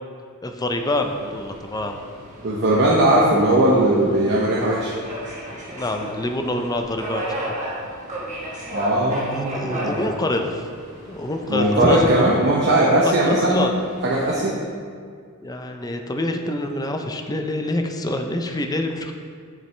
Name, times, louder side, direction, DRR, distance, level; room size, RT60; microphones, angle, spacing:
voice 1, 0.4-2.0 5.7-7.5 9.3-10.7 11.1-12.1 13.0-13.7 15.4-19.1, left 1 dB, 15° left, 4 dB, 0.5 m, -26 dB
Subway metro underground, 0.8-14.4, right 1 dB, 35° right, 1.3 m, -36 dB
voice 2, 2.4-4.9 8.7-10.0 11.5-13.7 14.0-14.6, right 1 dB, 50° right, -4 dB, 0.8 m, -19 dB
7.4 x 6.7 x 3.2 m, 2.1 s
head